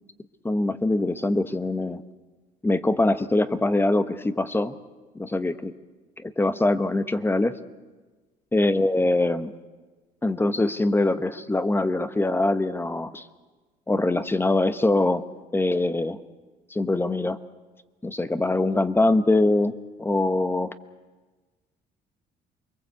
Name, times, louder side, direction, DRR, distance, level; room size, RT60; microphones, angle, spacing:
voice 1, 0.4-2.0 2.6-4.8 5.1-5.7 6.2-7.5 8.5-9.5 10.2-13.2 13.9-15.2 15.5-16.2 16.7-17.4 18.0-20.7, left 2 dB, 15° left, 11 dB, 1.1 m, -23 dB
28.5 x 22.0 x 8.2 m, 1.3 s
cardioid pair, 110°, 17 cm